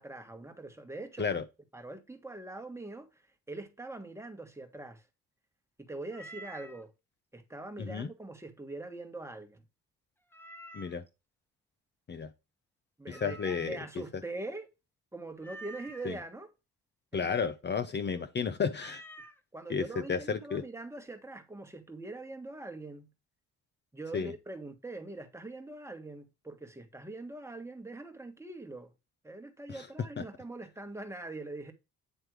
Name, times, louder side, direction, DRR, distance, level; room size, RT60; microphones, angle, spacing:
voice 1, 0.0-1.4 1.7-5.1 5.8-6.9 7.3-9.6 13.0-14.7 15.1-16.5 17.1-17.3 17.8-17.9 18.1-18.2 19.5-23.1 23.9-28.9 29.2-31.7, right 2 dB, 10° right, 1.5 m, -43 dB
Meow, 6.1-6.8 10.3-11.1 13.1-13.9 15.4-16.1 18.7-19.4, right 1 dB, 5° left, 1.3 m, -49 dB
voice 2, 13.1-14.0 16.0-16.2 17.1-19.0 19.7-20.6 24.1-24.3 29.7-29.9, left 6 dB, 35° left, 0.7 m, -32 dB
9.2 x 3.3 x 4.7 m
cardioid pair, 90°, 30 cm